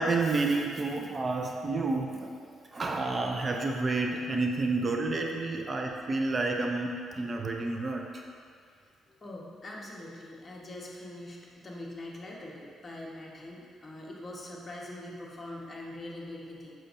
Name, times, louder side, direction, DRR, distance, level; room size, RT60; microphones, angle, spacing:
voice 1, 0.0-2.4 2.7-8.1, right 3 dB, 35° right, 2 dB, 0.4 m, -30 dB
voice 2, 9.1-16.7, left 1 dB, 25° left, -3 dB, 1.1 m, -43 dB
6.6 x 6.1 x 2.6 m, 2.2 s
cardioid pair, 90°, 0 cm